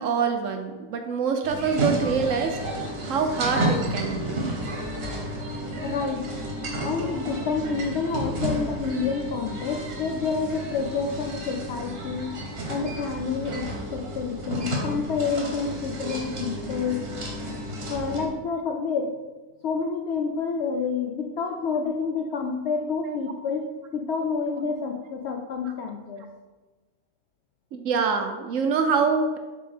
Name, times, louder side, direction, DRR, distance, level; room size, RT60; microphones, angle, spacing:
voice 1, 0.0-2.6 3.0-4.4 23.1-23.2 27.7-29.4, right 5 dB, 65° right, 5 dB, 0.9 m, -25 dB
sound 1, 1.4-18.3, right 1 dB, 45° right, 1.2 m, -32 dB
voice 2, 5.8-6.3 6.8-12.4 12.7-17.0 17.9-19.1 19.6-23.7 23.9-26.2, left 5 dB, 75° left, 3 dB, 0.6 m, -28 dB
7.3 x 3.6 x 4.2 m, 1.2 s
omnidirectional pair, 1.6 m